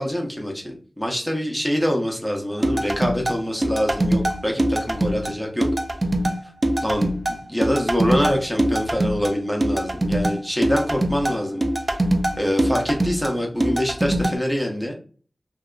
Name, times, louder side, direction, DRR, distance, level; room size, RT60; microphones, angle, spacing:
voice 1, 0.0-5.7 6.4-6.5 6.8-7.1 7.5-11.6 12.4-14.9, equal, ahead, 0 dB, 0.7 m, -25 dB
sound 1, 2.6-14.3, right 1 dB, 35° right, 0.4 m, -23 dB
2.7 x 2.2 x 2.3 m, 0.40 s
wide cardioid pair, 85°, 0 cm